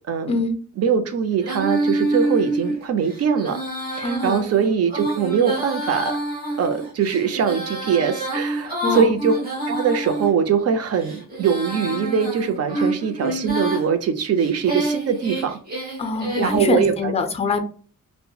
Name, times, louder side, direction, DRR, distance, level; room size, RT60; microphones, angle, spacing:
voice 1, 0.1-0.4 0.8-3.6 3.9-6.2 6.6-9.4 9.7-15.6 16.4-17.1, right 7 dB, 55° right, 7 dB, 0.6 m, -22 dB
Female singing, 1.4-10.3 10.9-13.9 14.4-16.7, right 1 dB, 30° right, 1.1 m, -27 dB
voice 2, 4.0-4.5 8.8-9.2 12.7-12.9 16.0-17.6, left 3 dB, 20° left, 6 dB, 0.4 m, -24 dB
2.8 x 2.1 x 2.2 m, 0.42 s
wide cardioid pair, 145°, 30 cm